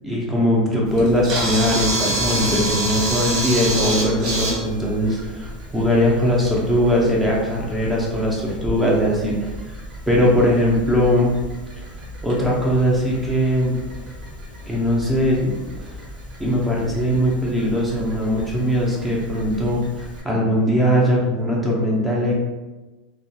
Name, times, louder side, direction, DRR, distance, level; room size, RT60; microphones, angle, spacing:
voice 1, 0.0-9.8 10.1-11.3 11.8-11.9 12.2-13.7 14.7-15.5 15.8-15.9 16.4-22.3, equal, 5° right, -4 dB, 0.4 m, -20 dB
Camera, 0.9-20.2, right 1 dB, 40° right, 0.7 m, -30 dB
2.2 x 2.2 x 2.7 m, 1.2 s
supercardioid pair, 170°, 0 cm